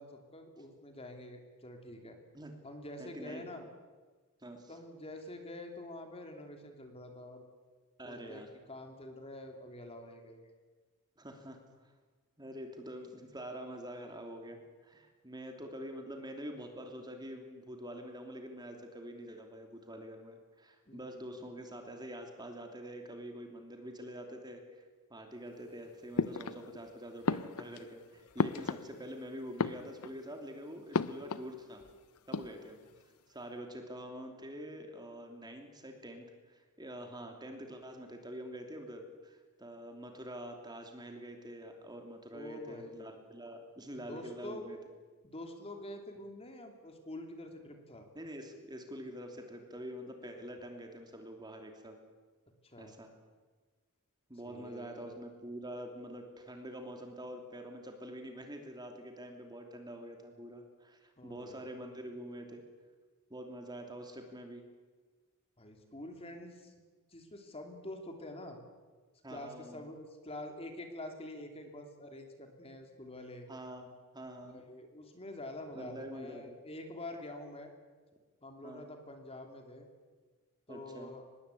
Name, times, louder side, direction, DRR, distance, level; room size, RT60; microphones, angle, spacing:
voice 1, 0.0-2.2 2.6-3.7 4.7-7.4 8.0-8.4 8.7-10.5 20.9-21.0 42.3-43.1 44.1-44.7 45.2-48.1 52.6-53.0 54.4-55.2 61.2-61.7 65.6-68.6 69.3-73.5 74.4-77.7 78.4-79.9 80.7-81.2, left 1 dB, 25° left, 4 dB, 3.1 m, -46 dB
voice 2, 3.0-3.4 4.4-4.7 8.0-8.5 11.2-11.9 12.4-24.8 25.1-31.8 32.3-32.8 33.3-44.8 48.1-52.0 52.8-53.1 54.3-62.6 63.3-64.6 69.2-69.8 73.5-73.9 74.1-74.6 75.7-76.4 78.6-78.9 80.7-81.1, equal, 20° right, 4 dB, 2.9 m, -46 dB
sound 1, 26.2-26.9 27.2-29.2 29.5-30.3 30.9-31.5 31.8-31.9 32.2-32.9, left 4 dB, 80° left, 0.8 m, -35 dB
25.0 x 20.5 x 8.5 m, 1.4 s
head